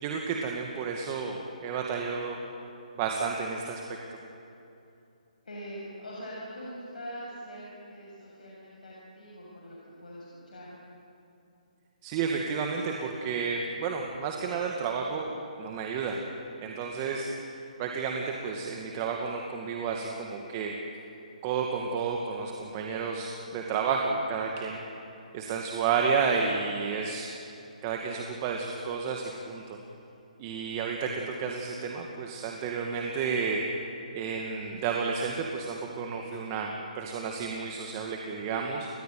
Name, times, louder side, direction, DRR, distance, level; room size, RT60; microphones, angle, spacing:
voice 1, 0.0-2.4 3.0-3.8 12.0-15.3 15.6-16.2 16.6-17.3 17.8-20.7 21.4-24.8 25.3-27.3 27.8-29.8 30.4-33.6 34.1-38.9, right 5 dB, 30° right, 1 dB, 2.1 m, -31 dB
voice 2, 5.4-10.8, equal, 80° left, -5 dB, 7.1 m, -43 dB
30.0 x 14.5 x 9.3 m, 2.7 s
hypercardioid pair, 155°, 4 cm